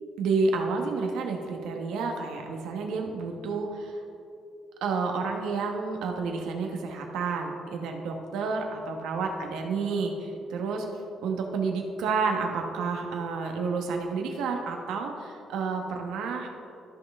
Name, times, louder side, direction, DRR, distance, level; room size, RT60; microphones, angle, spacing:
voice 1, 0.2-4.0 4.8-10.9 11.2-16.5, right 4 dB, 90° right, 3 dB, 1.0 m, -30 dB
13.5 x 5.4 x 3.5 m, 2.7 s
cardioid pair, 90°, 0 cm